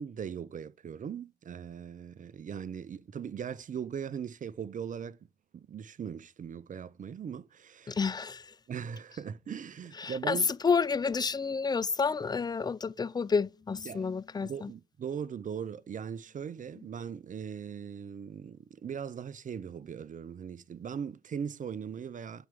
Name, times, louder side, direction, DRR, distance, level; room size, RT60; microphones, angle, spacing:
voice 1, 0.0-5.2 5.5-8.0 8.7-10.5 13.9-14.1 14.4-22.5, right 7 dB, 40° right, 0.6 m, -39 dB
voice 2, 7.9-8.5 10.0-14.7, left 5 dB, 20° left, 0.5 m, -30 dB
8.0 x 4.3 x 3.6 m
hypercardioid pair, 50°, 20 cm